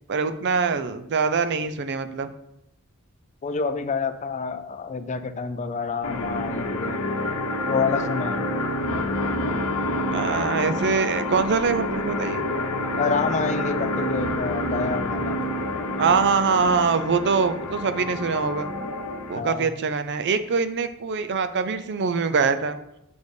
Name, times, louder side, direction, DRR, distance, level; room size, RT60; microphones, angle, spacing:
voice 1, 0.1-2.3 10.1-12.4 16.0-18.7 19.3-22.8, right 5 dB, 50° right, 11 dB, 0.5 m, -23 dB
voice 2, 3.4-7.0 7.7-8.5 13.0-15.4 19.3-19.7, left 5 dB, 30° left, 10 dB, 0.4 m, -28 dB
sound 1, 6.0-19.4, left 1 dB, 80° left, 0.9 m, -28 dB
6.9 x 4.2 x 4.9 m, 0.81 s
head